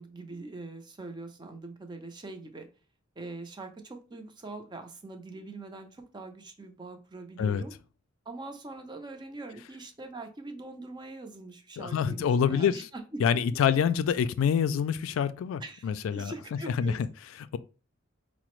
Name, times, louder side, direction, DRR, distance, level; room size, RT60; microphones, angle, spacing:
voice 1, 0.0-2.7 3.2-7.7 8.3-13.2 13.5-13.7 15.6-17.0, right 2 dB, 20° right, 0.5 m, -43 dB
voice 2, 11.8-12.9 13.2-16.3 16.7-17.1, left 7 dB, 85° left, 0.3 m, -26 dB
4.9 x 2.0 x 3.0 m
head